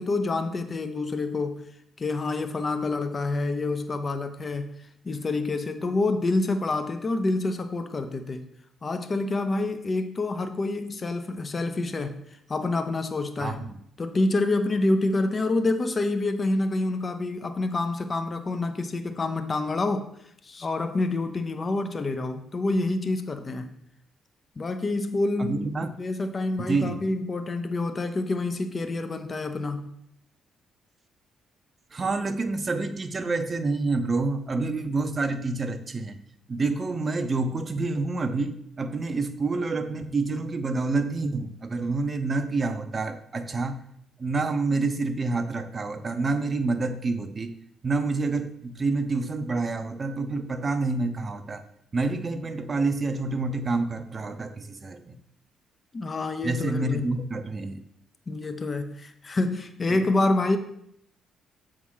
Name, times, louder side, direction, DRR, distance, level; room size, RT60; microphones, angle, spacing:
voice 1, 0.0-1.6 2.0-4.7 5.0-8.4 8.8-12.2 12.5-13.7 14.0-20.1 20.4-23.7 24.6-29.9 55.9-57.2 58.3-60.6, left 2 dB, 35° left, 8 dB, 0.8 m, -27 dB
voice 2, 25.5-25.9 26.7-27.0 31.9-36.1 36.5-43.8 44.2-47.5 47.8-48.5 48.8-51.6 51.9-54.5 54.8-55.0 56.4-57.7, right 3 dB, 35° right, 8 dB, 0.8 m, -27 dB
7.2 x 3.7 x 6.3 m, 0.73 s
cardioid pair, 90°, 0 cm